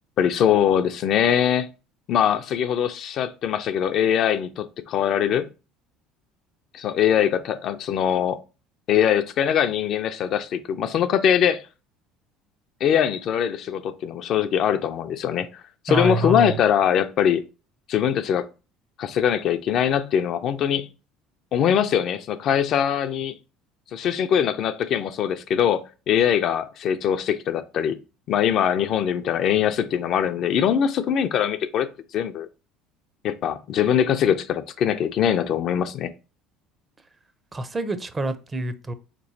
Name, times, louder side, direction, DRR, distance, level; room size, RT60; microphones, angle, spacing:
voice 1, 0.2-1.7 2.1-5.5 6.7-8.4 8.9-11.6 12.8-17.4 17.9-18.5 19.0-20.9 21.5-23.4 23.9-28.0 28.3-31.9 32.1-32.5 33.2-36.1, left 9 dB, 55° left, 0.4 m, -22 dB
voice 2, 15.9-16.6 37.5-38.9, right 1 dB, 25° right, 0.5 m, -26 dB
4.1 x 3.0 x 2.7 m
hypercardioid pair, 80°, 0 cm